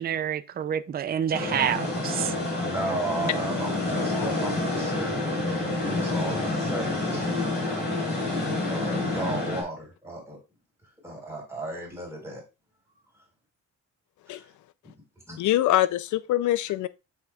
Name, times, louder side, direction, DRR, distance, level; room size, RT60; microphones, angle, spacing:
voice 1, 0.0-2.3, right 9 dB, 30° right, 0.5 m, -28 dB
Indoor Go-Kart, 1.3-9.6, left 2 dB, 35° left, 4.5 m, -28 dB
voice 2, 2.6-10.4 11.0-12.4 14.3-14.4 15.3-15.4, right 1 dB, 10° right, 4.4 m, -35 dB
voice 3, 15.4-16.9, left 14 dB, 70° left, 0.5 m, -23 dB
7.7 x 7.1 x 2.4 m
cardioid pair, 125°, 30 cm